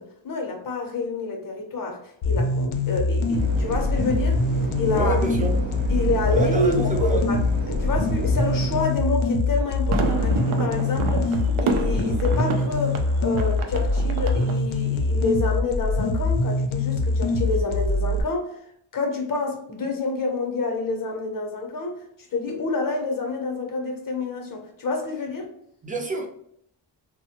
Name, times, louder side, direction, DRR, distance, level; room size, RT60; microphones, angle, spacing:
voice 1, 0.0-4.4 4.8-5.2 5.9-7.4 7.7-13.0 13.2-18.6 18.9-22.0 22.3-25.5, left 3 dB, 45° left, 0.7 m, -28 dB
sound 1, 2.2-18.2, left 2 dB, 80° left, 0.6 m, -23 dB
sound 2, 3.3-8.8, right 4 dB, 70° right, 0.9 m, -31 dB
voice 2, 4.9-5.5 6.3-7.2 25.8-26.3, right 3 dB, 15° right, 0.5 m, -27 dB
sound 3, 9.5-14.6, right 3 dB, 90° right, 0.5 m, -29 dB
3.0 x 2.1 x 2.8 m
wide cardioid pair, 135°, 48 cm